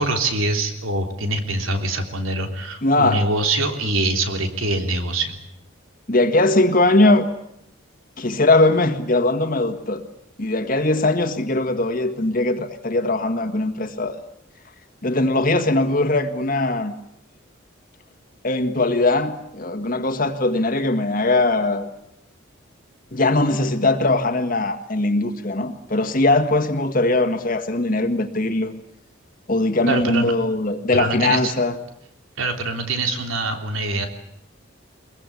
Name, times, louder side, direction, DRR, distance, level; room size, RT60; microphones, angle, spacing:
voice 1, 0.0-5.4 29.9-30.3 30.9-31.5 32.4-34.1, right 2 dB, 80° right, 5 dB, 3.3 m, -24 dB
voice 2, 2.8-3.2 6.1-7.3 8.2-10.0 10.4-14.2 15.0-16.9 18.4-21.9 23.1-28.7 29.5-31.7, left 2 dB, 40° left, 7 dB, 1.7 m, -20 dB
23.0 x 22.0 x 8.4 m, 0.77 s
head